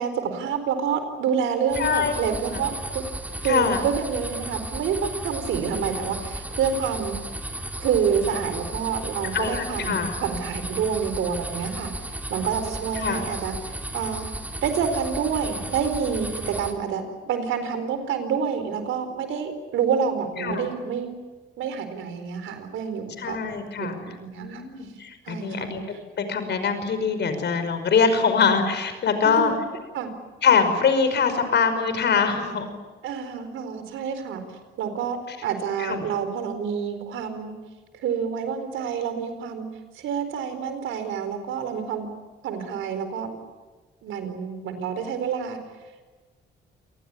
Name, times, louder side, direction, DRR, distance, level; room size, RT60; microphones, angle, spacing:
voice 1, 0.0-3.0 3.4-7.2 7.8-14.2 14.6-21.1 21.6-23.4 23.8-24.7 25.2-25.7 29.2-29.6 29.9-30.1 32.4-32.6 33.0-34.4 34.8-37.5 38.0-39.7 39.9-42.1 42.4-43.4 44.0-45.6, right 7 dB, 85° right, 9 dB, 4.4 m, -28 dB
sound 1, 1.7-16.7, right 1 dB, 10° right, 3.7 m, -34 dB
voice 2, 1.8-2.1 3.4-3.8 9.3-10.1 13.0-13.2 20.4-20.6 23.2-24.0 24.4-25.8 26.2-29.5 30.4-32.7 35.3-35.4 35.8-36.1, left 6 dB, 60° left, 9 dB, 5.4 m, -23 dB
27.5 x 19.5 x 9.9 m, 1.3 s
cardioid pair, 90°, 20 cm